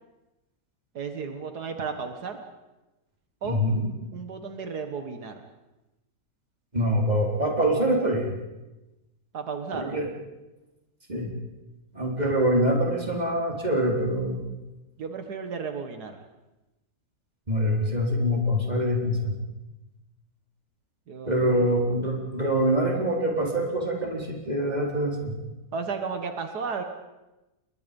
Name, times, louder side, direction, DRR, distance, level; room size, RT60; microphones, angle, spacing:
voice 1, 0.9-2.4 3.4-3.6 4.1-5.4 9.3-10.0 15.0-16.3 21.1-21.7 25.7-26.8, right 5 dB, 85° right, 6 dB, 2.1 m, -34 dB
voice 2, 3.4-3.9 6.7-8.3 9.7-10.0 11.1-11.3 11.9-14.4 17.5-19.3 21.3-25.3, equal, 25° right, -1 dB, 4.4 m, -25 dB
29.5 x 22.0 x 5.4 m, 1.0 s
omnidirectional pair, 1.7 m